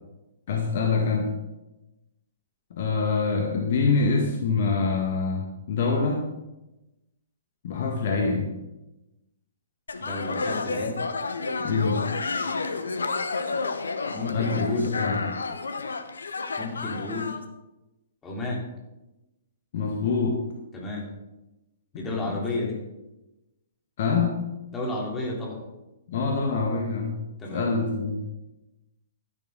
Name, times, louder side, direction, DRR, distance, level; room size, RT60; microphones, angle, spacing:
voice 1, 0.5-1.3 2.7-6.2 7.6-8.5 11.6-12.2 14.3-15.4 19.7-20.5 21.9-22.4 24.0-24.5 26.1-28.2, left 4 dB, 50° left, 1 dB, 1.7 m, -25 dB
sound 1, 9.9-17.4, left 4 dB, 70° left, 1.0 m, -30 dB
voice 2, 10.0-11.0 14.1-14.9 16.6-17.4 18.2-18.7 20.7-21.1 21.9-22.8 24.7-25.6 27.4-27.6, left 2 dB, 15° left, -2 dB, 3.3 m, -31 dB
12.0 x 10.5 x 3.9 m, 0.98 s
figure-of-eight pair, 115°, 0 cm